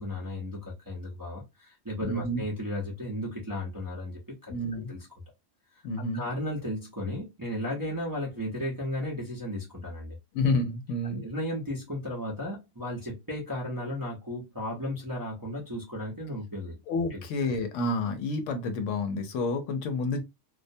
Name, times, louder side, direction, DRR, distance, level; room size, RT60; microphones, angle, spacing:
voice 1, 0.0-5.1 6.1-10.2 11.0-16.8 17.1-17.2, left 1 dB, 20° right, 0.6 m, -35 dB
voice 2, 2.0-2.4 4.5-4.9 5.8-6.2 10.3-11.2 16.9-20.2, left 2 dB, 80° left, 0.9 m, -29 dB
2.4 x 2.1 x 2.6 m
omnidirectional pair, 1.3 m